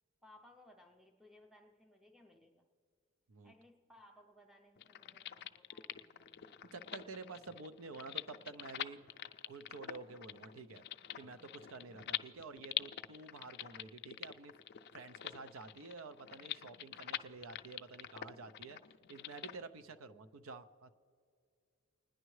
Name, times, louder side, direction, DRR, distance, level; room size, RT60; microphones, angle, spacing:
voice 1, 0.2-2.7 3.4-6.5, left 1 dB, ahead, 3 dB, 0.6 m, -63 dB
sound 1, 4.8-19.5, left 11 dB, 50° left, 0.4 m, -45 dB
voice 2, 6.7-9.1 9.5-10.8 11.2-14.6 14.9-18.8 19.1-20.9, right 4 dB, 75° right, 11 dB, 0.6 m, -50 dB
29.5 x 10.0 x 3.2 m, 2.3 s
head